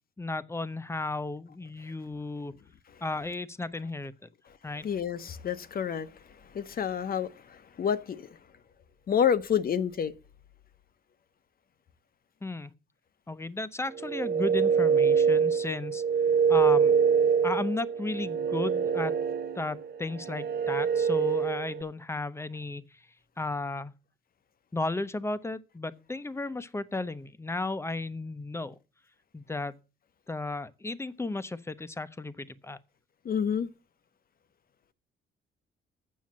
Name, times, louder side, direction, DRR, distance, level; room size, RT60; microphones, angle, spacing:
voice 1, 0.2-2.5 3.0-4.3 4.6-4.8 12.4-12.7 13.3-16.0 16.5-16.9 17.4-19.1 19.5-22.8 23.4-23.9 24.7-28.8 29.3-29.7 30.3-32.8, left 2 dB, 15° left, 0.7 m, -34 dB
voice 2, 4.8-6.1 6.5-8.3 9.1-10.1 33.2-33.7, left 8 dB, 50° left, 0.8 m, -28 dB
sound 1, 13.9-21.8, right 6 dB, 50° right, 0.7 m, -25 dB
7.6 x 6.3 x 7.3 m
cardioid pair, 90°, 20 cm